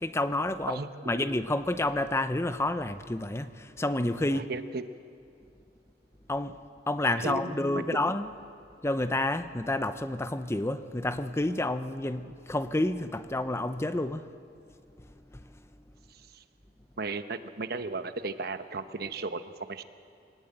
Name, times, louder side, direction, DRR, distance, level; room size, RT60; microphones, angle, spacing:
voice 1, 0.0-4.5 6.3-6.6 6.9-8.3 8.8-14.3 15.3-15.5, left 1 dB, 15° left, 11 dB, 0.7 m, -29 dB
voice 2, 0.7-1.1 4.3-4.8 7.2-7.8 16.1-16.4 17.0-19.8, right 3 dB, 60° right, 10 dB, 1.0 m, -35 dB
23.0 x 19.0 x 8.8 m, 2.4 s
head